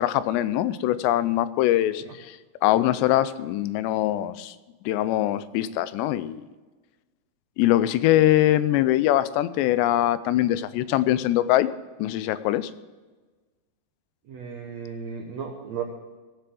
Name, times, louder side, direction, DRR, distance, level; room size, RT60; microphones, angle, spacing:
voice 1, 0.0-2.4 2.6-4.6 4.9-6.5 7.6-11.7 12.0-12.7, left 14 dB, 85° left, 15 dB, 2.8 m, -22 dB
voice 2, 14.3-15.8, right 6 dB, 75° right, 2 dB, 1.6 m, -35 dB
17.5 x 6.9 x 7.6 m, 1.3 s
omnidirectional pair, 4.9 m